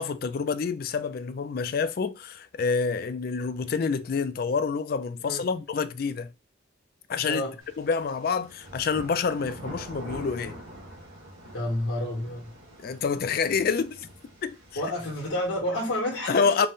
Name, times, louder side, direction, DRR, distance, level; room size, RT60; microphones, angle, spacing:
voice 1, 0.0-6.3 7.1-7.4 7.8-10.6 12.8-14.1 14.4-14.6 16.3-16.7, left 5 dB, 50° left, 0.3 m, -27 dB
voice 2, 7.2-7.6 11.5-12.5 14.8-16.7, left 1 dB, 85° left, 1.1 m, -30 dB
sound 1, 7.6-15.6, equal, 90° right, 1.4 m, -45 dB
3.9 x 2.1 x 3.6 m
head